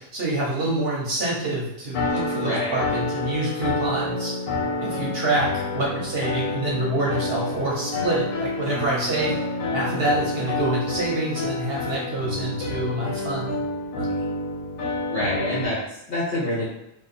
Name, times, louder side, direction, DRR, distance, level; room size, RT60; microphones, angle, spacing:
voice 1, 0.0-4.3 4.8-9.4 9.7-13.6 14.0-14.1, right 2 dB, 55° right, -4 dB, 0.9 m, -26 dB
sound 1, 1.9-15.7, left 2 dB, 85° left, 1.1 m, -29 dB
voice 2, 2.4-2.8 15.1-16.7, left 1 dB, 50° left, -7 dB, 1.5 m, -27 dB
2.9 x 2.4 x 4.0 m, 0.79 s
omnidirectional pair, 1.3 m